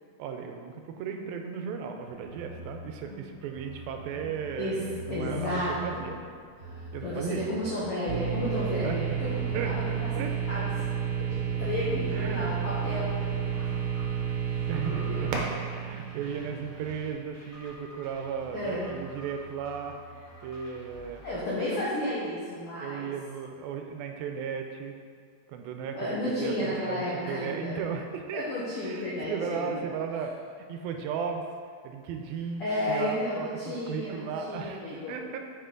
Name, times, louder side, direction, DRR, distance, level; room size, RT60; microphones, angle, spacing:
voice 1, 0.2-6.2 6.9-7.5 8.8-9.1 9.5-10.3 12.1-12.5 14.7-15.3 15.8-20.0 20.4-21.2 22.8-25.0 25.5-28.5 28.8-30.3 30.6-31.4 31.8-32.6 32.9-35.4, right 6 dB, 90° right, 5 dB, 2.4 m, -36 dB
sound 1, 2.1-21.4, right 1 dB, 35° left, 1.1 m, -47 dB
voice 2, 5.1-6.1 6.6-10.1 10.5-10.7 11.6-13.2 14.5-14.6 14.9-15.3 18.5-18.9 21.2-23.1 25.9-27.8 28.3-29.8 32.6-35.2, left 1 dB, 75° left, -8 dB, 1.3 m, -32 dB
sound 2, 8.1-17.0, right 7 dB, 70° right, 1.8 m, -31 dB
7.9 x 5.2 x 3.8 m, 2.1 s
omnidirectional pair, 4.2 m